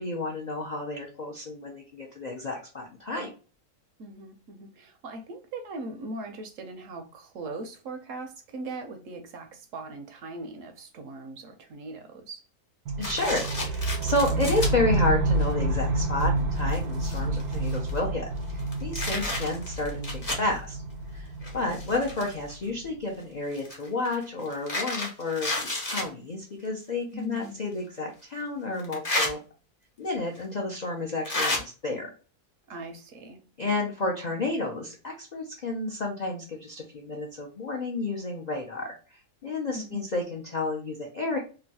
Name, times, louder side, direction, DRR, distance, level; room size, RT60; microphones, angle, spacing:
voice 1, 0.0-3.3 13.0-20.8 21.1-21.3 21.5-29.4 30.0-32.1 33.6-41.4, left 2 dB, 70° left, 0.4 m, -31 dB
voice 2, 4.0-12.4 17.0-17.5 19.1-19.4 27.1-27.7 32.7-33.4 39.7-40.0, right 2 dB, 65° right, 0.8 m, -40 dB
sound 1, 12.9-22.9, right 2 dB, 90° right, 1.2 m, -29 dB
sound 2, 13.0-14.7 15.4-15.5 16.2-16.3 16.6-18.0 18.5-20.5 21.4-22.5 23.5-26.1 27.4-27.5 28.8-29.3 30.3-30.4 31.2-31.6, left 2 dB, 30° left, 0.7 m, -31 dB
3.0 x 2.2 x 2.7 m
omnidirectional pair, 1.6 m